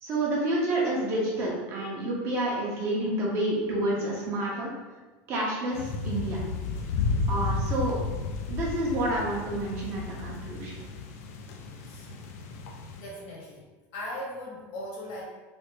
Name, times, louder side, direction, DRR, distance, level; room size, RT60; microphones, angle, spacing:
voice 1, 0.0-4.7 5.3-6.4 7.3-8.0 8.5-10.8, right 1 dB, 30° right, -4 dB, 0.7 m, -29 dB
sound 1, 5.7-13.0, left 4 dB, 80° left, 0.4 m, -33 dB
voice 2, 13.0-15.2, left 1 dB, 55° left, -4 dB, 1.1 m, -39 dB
3.3 x 2.5 x 3.0 m, 1.3 s
supercardioid pair, 175°, 8 cm